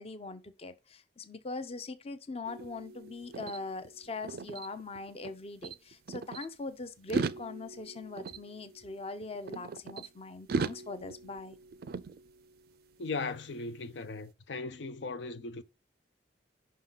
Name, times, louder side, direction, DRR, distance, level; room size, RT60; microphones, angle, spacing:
voice 1, 0.0-11.6, left 3 dB, 35° left, 0.6 m, -41 dB
sound 1, 2.5-5.3 5.6-6.5 7.0-10.1 10.5-12.8, right 4 dB, 60° right, 0.4 m, -39 dB
voice 2, 13.0-15.6, left 3 dB, 85° left, 0.6 m, -38 dB
5.6 x 3.7 x 5.6 m
head